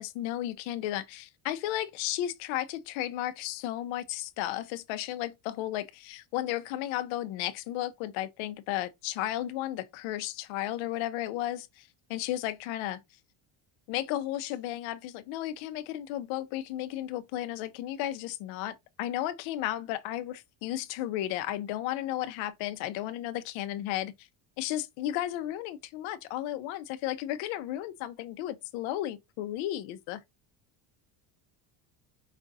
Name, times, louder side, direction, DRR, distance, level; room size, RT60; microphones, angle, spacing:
voice 1, 0.0-13.0 13.9-24.3 24.6-30.2, left 13 dB, 75° left, 0.7 m, -34 dB
5.1 x 2.4 x 3.9 m
cardioid pair, 170°, 47 cm